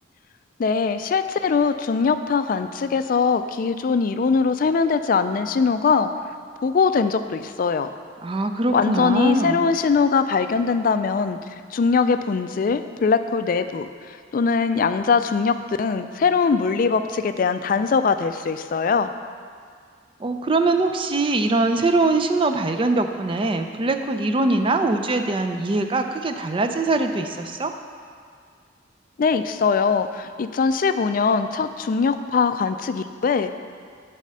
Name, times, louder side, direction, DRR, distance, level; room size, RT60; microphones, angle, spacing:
voice 1, 0.6-6.1 6.6-7.9 8.7-11.4 11.7-19.1 29.2-33.5, left 5 dB, 50° left, 10 dB, 0.3 m, -21 dB
voice 2, 8.2-9.7 20.2-27.7, right 2 dB, 30° right, 7 dB, 0.4 m, -22 dB
8.2 x 4.3 x 6.7 m, 2.1 s
head